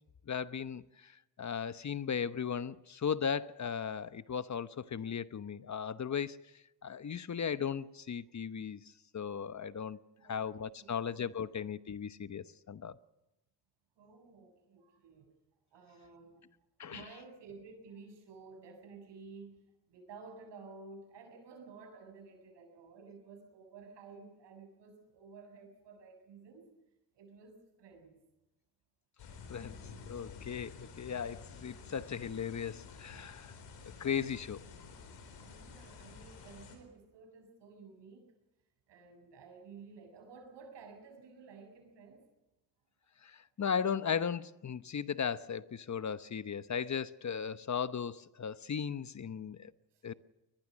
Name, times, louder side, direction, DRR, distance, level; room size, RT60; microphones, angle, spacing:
voice 1, 0.3-6.4 6.8-8.8 9.1-13.0 16.8-17.0 29.5-29.8 30.1-33.5 34.0-34.6 43.2-49.7 50.0-50.1, left 7 dB, 45° left, 1.0 m, -37 dB
voice 2, 10.2-11.0 14.0-15.3 15.7-16.5 16.9-26.7 27.1-28.2 35.4-38.3 38.9-42.3 49.9-50.2, right 4 dB, 85° right, 7.3 m, -53 dB
sound 1, 29.2-36.8, left 5 dB, 90° left, 4.7 m, -51 dB
22.0 x 21.0 x 6.3 m
supercardioid pair, 60°, 41 cm